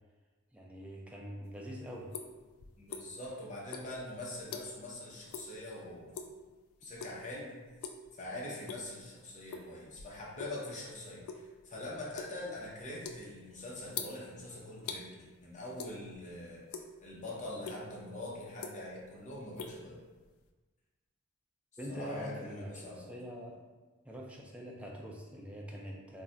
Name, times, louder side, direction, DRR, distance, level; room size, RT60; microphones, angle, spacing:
voice 1, 0.5-2.1 21.8-23.6 24.0-26.2, equal, 5° right, -2 dB, 0.4 m, -44 dB
sound 1, 1.4-3.3 3.6-4.9 5.3-5.6 5.9-6.4 6.9-7.3 7.7-8.1 8.5-9.0 9.5-10.6 10.9-15.0 15.8-16.3 16.6-17.2 17.6-17.8 18.3-19.1 19.3-20.5, left 6 dB, 90° left, 0.3 m, -44 dB
voice 2, 2.8-6.2 6.8-7.5 8.2-16.6 17.0-20.0 21.9-23.0, left 1 dB, 35° left, -4 dB, 0.6 m, -43 dB
2.3 x 2.1 x 3.7 m, 1.3 s
head